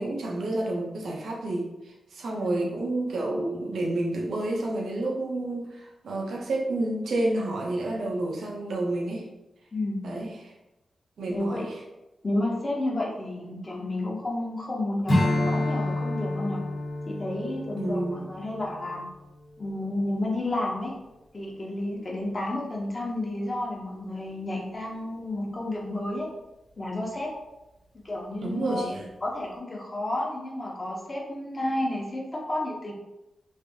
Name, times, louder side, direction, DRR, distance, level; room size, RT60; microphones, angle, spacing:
voice 1, 0.0-1.7 2.1-9.3 10.0-10.5 11.2-11.7 17.8-18.3 28.4-29.1, right 2 dB, 85° right, -1 dB, 0.6 m, -29 dB
voice 2, 11.3-11.7 12.2-16.6 17.1-19.0 19.6-21.0 21.3-26.3 26.8-27.3 28.0-28.9 29.2-32.9, left 1 dB, 30° left, -2 dB, 0.8 m, -31 dB
Strum, 15.1-19.8, left 1 dB, 65° left, 1.0 m, -29 dB
3.3 x 2.6 x 2.7 m, 0.97 s
wide cardioid pair, 105°, 0 cm